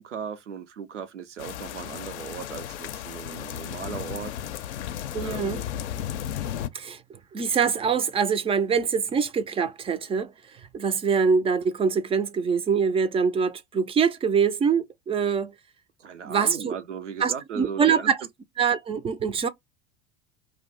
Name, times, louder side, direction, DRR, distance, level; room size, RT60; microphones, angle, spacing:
voice 1, 0.0-4.4 5.2-5.7 16.0-18.1, right 7 dB, 90° right, 0.5 m, -37 dB
sound 1, 1.4-6.7, left 10 dB, 70° left, 0.5 m, -34 dB
voice 2, 5.1-5.6 6.7-15.5 16.2-16.8 17.2-18.2 18.6-19.5, right 6 dB, 15° right, 0.3 m, -24 dB
2.5 x 2.1 x 3.8 m
figure-of-eight pair, 75°, 35 cm